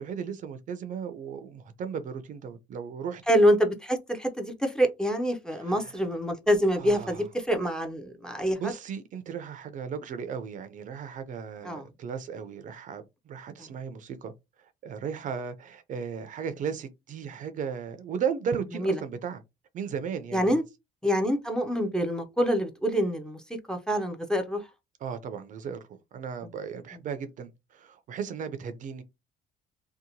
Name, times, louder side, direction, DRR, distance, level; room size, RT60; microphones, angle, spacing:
voice 1, 0.0-3.2 5.5-6.0 6.7-7.3 8.6-14.3 14.8-19.4 19.7-20.6 25.0-29.0, right 7 dB, 50° right, 0.5 m, -36 dB
voice 2, 3.3-8.6 11.6-11.8 18.8-18.9 20.3-20.6 21.0-23.4 23.7-24.6, equal, 5° left, 0.5 m, -26 dB
2.8 x 2.1 x 2.7 m
cardioid pair, 110°, 17 cm